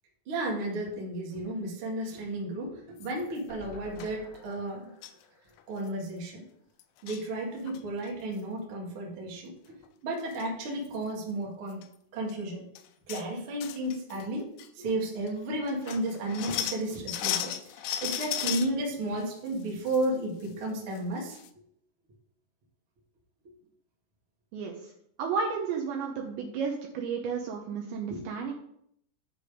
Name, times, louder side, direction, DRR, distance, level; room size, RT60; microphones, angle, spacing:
voice 1, 0.2-4.9 5.7-6.4 7.0-9.7 10.0-11.8 12.1-12.6 13.1-14.5 14.7-21.4 28.1-28.2, right 1 dB, 50° right, -2 dB, 1.6 m, -33 dB
sound 1, 3.0-3.4 4.0-4.1 5.0-5.2 5.6-5.7 5.9-6.1 6.8-7.3 7.7-8.1 9.8-9.9 10.2-10.4 10.9-11.0 11.7-11.9 12.3-12.4 12.8-13.3 13.6-14.3 14.6-14.7 15.3-15.4 15.7-18.7 19.2-20.1 20.4-20.5 20.9-21.0 21.3-21.5, left 11 dB, 85° left, 2.9 m, -35 dB
sound 2, 3.5-6.7 7.1-7.2 7.4-7.5, left 5 dB, 60° left, 3.6 m, -52 dB
voice 2, 24.5-24.9 25.2-28.5, right 5 dB, 80° right, 1 dB, 2.7 m, -32 dB
10.5 x 5.1 x 5.1 m, 0.72 s
omnidirectional pair, 5.9 m